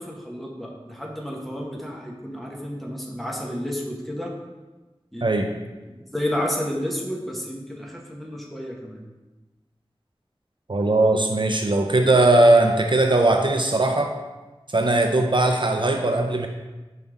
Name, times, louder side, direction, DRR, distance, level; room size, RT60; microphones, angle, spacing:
voice 1, 0.0-4.4 5.1-5.3 5.8-9.0, equal, ahead, -1 dB, 1.0 m, -31 dB
voice 2, 10.7-14.1 14.7-16.5, right 2 dB, 55° right, 4 dB, 0.5 m, -19 dB
5.5 x 5.1 x 3.5 m, 1.2 s
wide cardioid pair, 45°, 10 cm